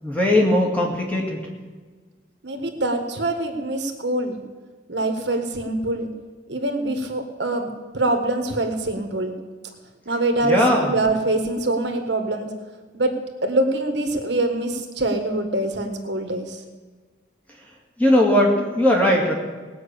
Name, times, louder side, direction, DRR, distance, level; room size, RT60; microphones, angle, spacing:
voice 1, 0.0-1.4 10.4-10.9 18.0-19.3, left 1 dB, 10° left, -2 dB, 2.5 m, -18 dB
voice 2, 2.4-4.4 4.9-6.1 6.5-9.4 10.0-12.5 12.9-13.1 13.4-16.6, right 2 dB, 65° right, 5 dB, 1.5 m, -24 dB
18.5 x 6.2 x 8.6 m, 1.4 s
head